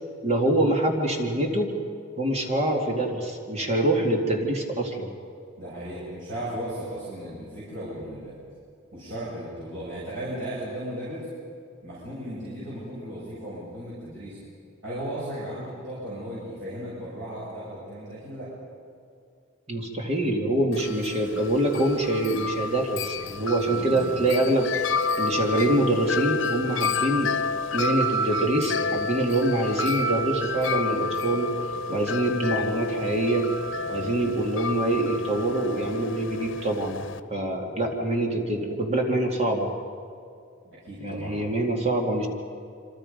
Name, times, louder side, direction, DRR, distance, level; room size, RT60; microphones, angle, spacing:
voice 1, 0.2-1.7 2.2-5.1 19.7-24.7 25.2-27.3 27.7-31.5 31.9-33.5 33.9-37.0 37.3-39.7 41.0-42.3, right 1 dB, 35° right, 1 dB, 2.4 m, -25 dB
voice 2, 5.6-8.3 8.9-11.3 11.8-14.4 14.8-18.5 23.7-24.2 33.7-34.1 37.6-37.9 40.6-41.4, right 1 dB, 75° right, -8 dB, 7.5 m, -36 dB
Wind chime, 20.7-37.2, left 3 dB, 75° left, 1.0 m, -30 dB
27.5 x 26.0 x 5.3 m, 2.5 s
head